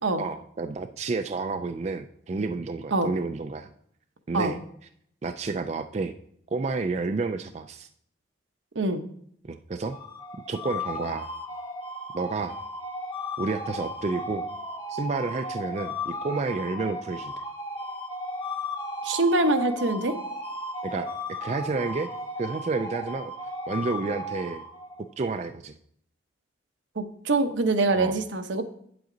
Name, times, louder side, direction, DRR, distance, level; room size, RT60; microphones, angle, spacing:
voice 1, 0.2-3.7 4.3-4.6 5.2-6.1 6.5-7.9 9.4-10.0 10.5-11.3 12.1-12.6 13.4-14.5 14.9-17.3 20.8-22.1 22.4-23.3 23.7-24.6 25.2-25.7 28.0-28.1, right 3 dB, 35° right, 8 dB, 0.3 m, -30 dB
sound 1, 9.8-25.1, left 1 dB, 25° left, 1.2 m, -35 dB
voice 2, 19.0-20.2 26.9-28.6, right 2 dB, 75° right, 7 dB, 0.9 m, -24 dB
9.3 x 7.8 x 3.9 m, 0.67 s
head